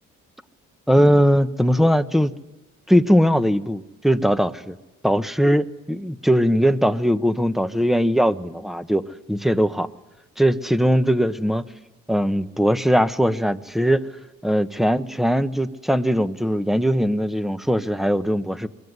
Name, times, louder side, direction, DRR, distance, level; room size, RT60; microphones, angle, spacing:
voice 1, 0.9-2.3 2.9-4.8 5.0-9.9 10.4-11.6 12.1-14.1 14.4-18.7, equal, ahead, 11 dB, 1.2 m, -20 dB
24.5 x 23.0 x 9.7 m, 1.0 s
cardioid pair, 90°, 30 cm